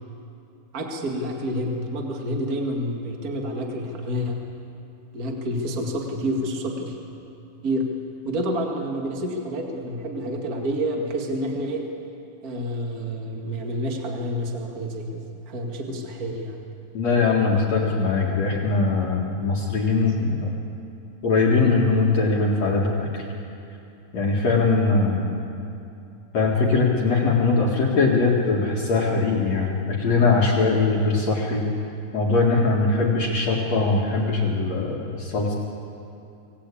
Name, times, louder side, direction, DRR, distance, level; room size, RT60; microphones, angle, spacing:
voice 1, 0.7-4.4 5.1-6.9 7.6-7.9 8.2-11.8 12.4-16.6, equal, 65° right, 1 dB, 0.8 m, -28 dB
voice 2, 16.9-20.5 21.2-23.2 24.1-25.2 26.3-31.6 32.1-35.5, left 3 dB, 50° left, -2 dB, 2.4 m, -21 dB
25.5 x 17.0 x 8.5 m, 2.7 s
omnidirectional pair, 5.3 m